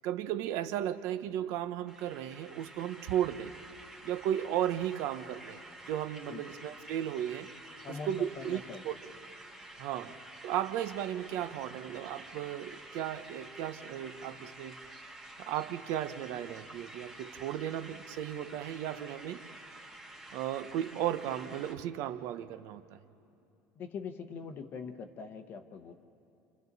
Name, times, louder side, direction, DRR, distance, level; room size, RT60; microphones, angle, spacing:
voice 1, 0.0-3.6 4.0-5.6 5.9-7.5 8.0-8.9 9.8-10.2 10.4-14.8 15.4-19.4 20.3-23.0, right 11 dB, 60° right, 12 dB, 0.8 m, -35 dB
sound 1, 1.9-21.7, right 2 dB, 10° right, 1.5 m, -50 dB
voice 2, 7.8-8.8 10.1-10.2 23.8-25.9, left 5 dB, 35° left, 6 dB, 0.9 m, -43 dB
29.5 x 28.5 x 4.1 m, 2.8 s
cardioid pair, 165°, 6 cm